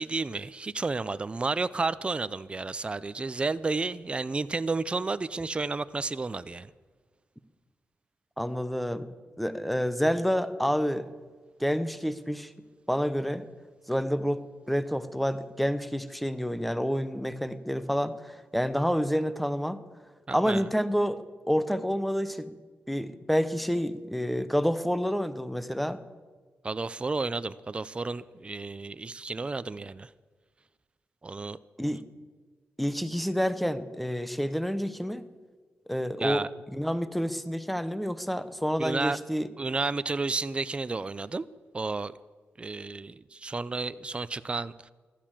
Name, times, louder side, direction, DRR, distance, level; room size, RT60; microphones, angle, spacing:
voice 1, 0.0-6.7 20.3-20.6 26.6-30.1 31.2-31.6 36.2-36.5 38.8-39.2 39.6-41.5 41.7-42.1 42.6-44.9, right 3 dB, 25° right, 0.5 m, -31 dB
voice 2, 8.4-9.1 9.4-11.1 11.6-12.5 12.9-13.4 13.9-19.8 20.3-22.6 22.9-26.0 31.8-32.0 32.8-35.2 35.9-39.5, equal, ahead, 0.9 m, -28 dB
15.0 x 12.0 x 7.5 m
cardioid pair, 95°, 4 cm